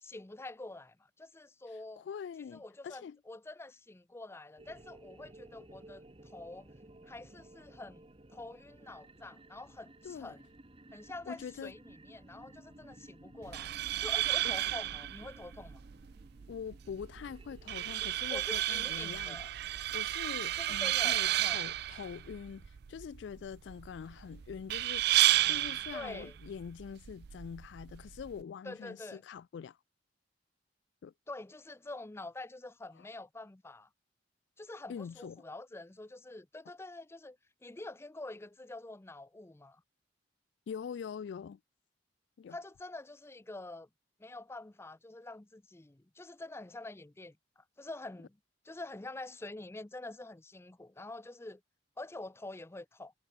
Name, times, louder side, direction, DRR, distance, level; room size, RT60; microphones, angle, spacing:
voice 1, 0.0-2.0 2.5-6.7 7.1-8.0 8.3-10.4 10.9-13.7 14.0-15.8 18.3-19.5 20.5-21.6 25.9-26.4 28.6-29.2 31.3-33.9 34.6-39.8 42.5-43.9 44.2-48.4 48.6-51.6 52.0-53.1, left 2 dB, 15° left, 0.5 m, -46 dB
voice 2, 1.9-3.2 10.0-10.4 11.3-11.7 14.4-14.5 16.5-19.4 19.9-25.2 25.4-29.8 31.0-31.1 33.0-33.1 34.9-35.4 40.7-41.6 42.4-42.6, left 7 dB, 70° left, 0.3 m, -44 dB
sound 1, 4.6-18.2, right 1 dB, 30° right, 1.4 m, -56 dB
sound 2, 13.4-28.4, right 14 dB, 60° right, 0.4 m, -33 dB
head